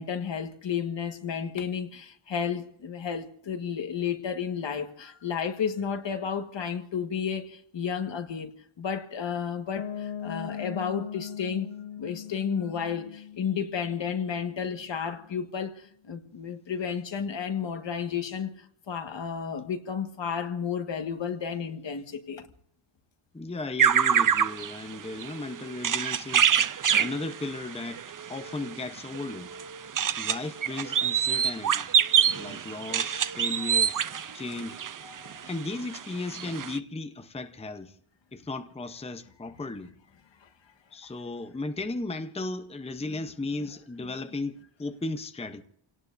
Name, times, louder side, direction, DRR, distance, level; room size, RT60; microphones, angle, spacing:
voice 1, 0.0-8.5 8.8-11.7 12.0-18.5 18.9-22.5 33.6-33.7 34.3-34.4 35.0-35.4 40.4-40.5, left 7 dB, 60° left, 1.6 m, -32 dB
Piano, 9.8-15.5, left 8 dB, 90° left, 1.2 m, -40 dB
voice 2, 23.3-29.5 30.2-31.9 32.3-33.9 34.3-34.8 35.4-38.0 38.3-39.9 40.9-45.6, left 2 dB, 10° left, 0.8 m, -36 dB
sound 1, 23.8-35.5 35.9-36.0 36.3-36.8, right 8 dB, 40° right, 0.6 m, -26 dB
29.0 x 18.0 x 2.7 m
wide cardioid pair, 150°, 49 cm